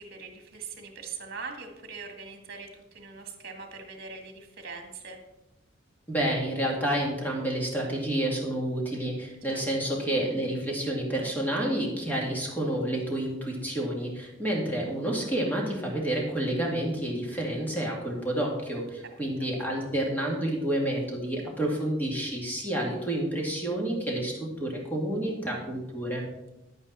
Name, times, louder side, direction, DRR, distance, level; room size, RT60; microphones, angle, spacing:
voice 1, 0.0-5.2 9.5-9.9 19.2-19.5, right 4 dB, 50° right, 4 dB, 1.8 m, -42 dB
voice 2, 6.1-26.2, right 1 dB, 10° left, -2 dB, 2.3 m, -29 dB
10.5 x 8.8 x 4.3 m, 0.96 s
head